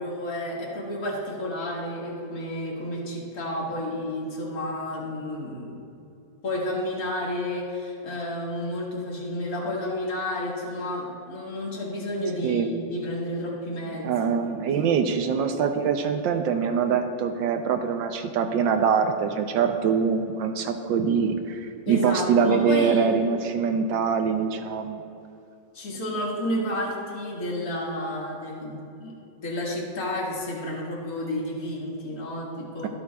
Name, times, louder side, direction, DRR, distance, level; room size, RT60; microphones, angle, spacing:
voice 1, 0.0-5.8 6.4-14.9 21.9-23.1 25.7-29.2 29.4-32.9, left 1 dB, 50° left, -4 dB, 2.4 m, -31 dB
voice 2, 14.0-25.0, right 6 dB, 85° right, 6 dB, 1.4 m, -24 dB
24.5 x 8.3 x 2.4 m, 2.7 s
omnidirectional pair, 2.0 m